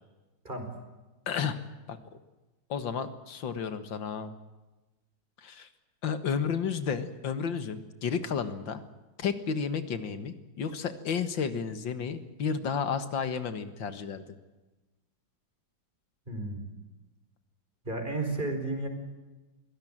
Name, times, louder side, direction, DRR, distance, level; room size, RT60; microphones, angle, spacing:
voice 1, 1.3-1.6 1.9-2.0 2.7-4.3 5.4-5.7 6.0-8.8 9.2-14.2, left 6 dB, 90° left, 11 dB, 2.3 m, -32 dB
voice 2, 16.3-16.7 17.8-18.9, right 2 dB, 25° right, 5 dB, 5.1 m, -32 dB
23.0 x 17.5 x 8.9 m, 1.1 s
omnidirectional pair, 2.0 m